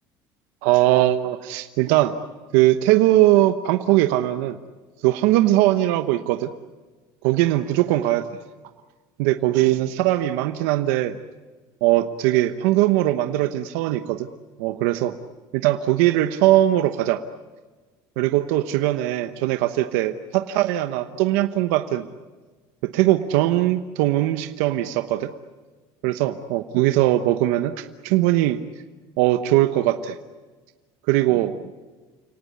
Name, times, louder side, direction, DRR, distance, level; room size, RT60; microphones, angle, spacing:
voice 1, 0.6-2.1 2.5-4.6 5.0-6.5 7.2-8.4 9.2-11.2 11.8-14.3 14.6-15.2 15.5-17.2 18.2-22.1 22.8-25.3 26.0-28.6 29.2-30.2 31.1-31.7, right 15 dB, 85° right, 9 dB, 1.1 m, -20 dB
29.5 x 19.0 x 9.5 m, 1.3 s
cardioid pair, 170°, 9 cm